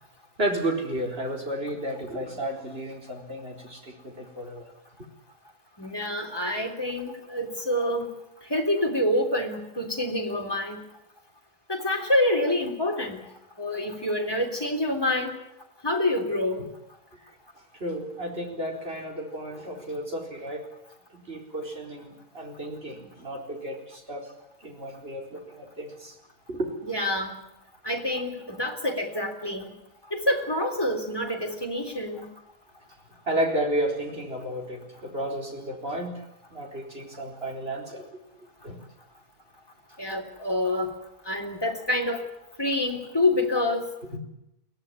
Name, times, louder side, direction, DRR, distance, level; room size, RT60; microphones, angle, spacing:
voice 1, 0.4-4.7 17.8-20.7 21.1-24.3 24.6-26.1 26.5-26.7 33.3-36.2 36.5-38.2 38.6-38.8, right 1 dB, 40° right, 1 dB, 4.6 m, -32 dB
voice 2, 5.8-8.1 8.5-10.8 11.7-13.2 13.6-15.3 15.8-16.7 26.9-27.4 27.8-29.7 30.1-32.3 40.0-40.9 41.3-42.2 42.6-43.9, left 1 dB, 15° left, 1 dB, 3.5 m, -27 dB
23.0 x 17.0 x 9.8 m, 0.87 s
omnidirectional pair, 1.6 m